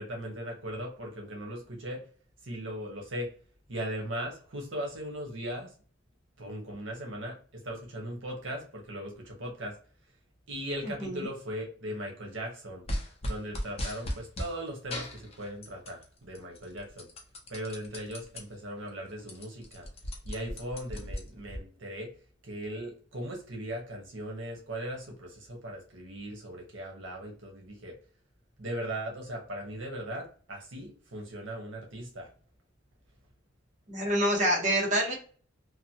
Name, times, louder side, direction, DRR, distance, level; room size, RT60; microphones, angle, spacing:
voice 1, 0.0-2.0 2.4-3.3 3.7-5.7 6.4-9.7 10.5-12.8 13.3-17.1 17.5-19.9 20.2-22.1 22.4-27.9 28.6-32.3, equal, 80° right, 0 dB, 0.9 m, -38 dB
sound 1, 12.9-14.5 14.9-16.0 16.4-18.4 18.9-19.0 19.2-21.6, equal, 35° left, 0.7 m, -37 dB
voice 2, 33.9-35.1, equal, 40° right, -1 dB, 0.9 m, -26 dB
2.9 x 2.2 x 2.7 m, 0.43 s
head